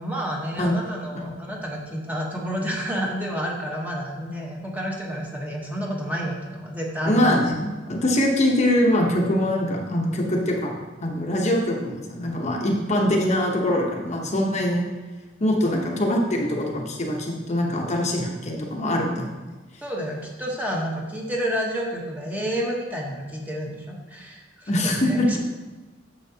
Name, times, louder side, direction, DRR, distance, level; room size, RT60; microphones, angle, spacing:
voice 1, 0.0-7.3 19.8-25.4, equal, 10° right, -2 dB, 1.1 m, -30 dB
voice 2, 7.1-10.7 11.0-14.8 15.4-19.4 24.7-25.4, left 1 dB, 35° left, 0 dB, 0.9 m, -23 dB
9.7 x 6.5 x 2.8 m, 1.2 s
head